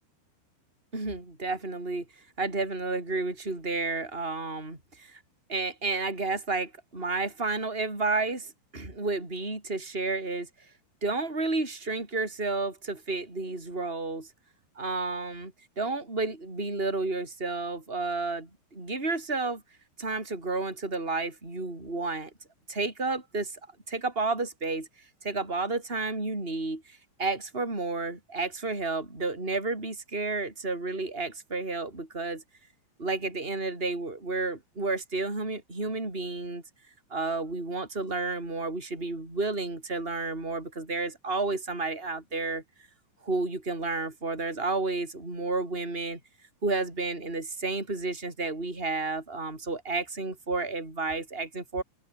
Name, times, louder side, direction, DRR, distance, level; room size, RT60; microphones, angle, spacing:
voice 1, 0.9-2.1 2.4-5.2 5.5-10.5 11.0-14.3 14.8-19.6 20.0-22.3 22.7-23.6 23.9-24.9 25.2-32.4 33.0-36.6 37.1-42.6 43.2-46.2 46.6-51.8, right 3 dB, 10° right, 6.9 m, -31 dB
open air
omnidirectional pair, 5.7 m